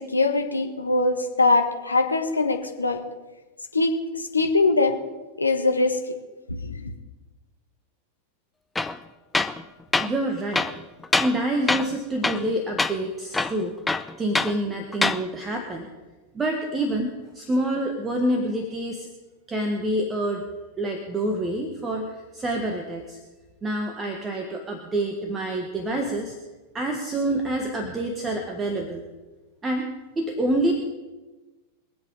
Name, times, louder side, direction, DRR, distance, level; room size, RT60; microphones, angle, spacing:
voice 1, 0.0-3.0 3.7-5.0 5.4-6.0 6.5-6.9, left 3 dB, 80° left, 5 dB, 1.4 m, -22 dB
Tools, 8.8-9.0 9.3-9.6 9.9-10.1 10.5-11.4 11.7-12.0 12.2-12.5 12.8-12.9 13.3-14.6 14.9-15.2, left 3 dB, 10° left, 0.6 m, -24 dB
voice 2, 10.0-10.7 11.2-13.8 14.2-15.9 16.3-19.1 19.5-20.4 20.8-23.2 23.6-26.4 26.7-29.0 29.6-29.9 30.1-30.7, right 1 dB, 15° right, 2 dB, 1.5 m, -27 dB
23.0 x 7.9 x 5.3 m, 1.2 s
figure-of-eight pair, 90°, 0 cm